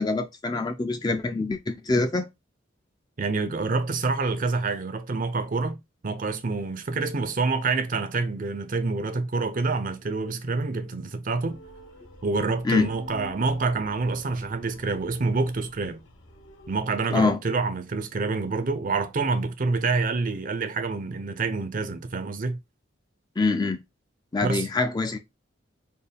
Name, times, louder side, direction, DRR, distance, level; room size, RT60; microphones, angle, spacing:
voice 1, 0.0-2.3 12.6-12.9 17.1-17.4 23.4-23.8 24.3-25.2, left 3 dB, 20° left, 0.4 m, -25 dB
voice 2, 3.2-5.8 6.0-11.6 12.2-16.0 16.7-22.6 24.4-24.7, right 3 dB, 40° right, 0.5 m, -27 dB
sound 1, 11.5-16.8, left 2 dB, 70° left, 0.9 m, -48 dB
4.3 x 2.2 x 3.4 m
head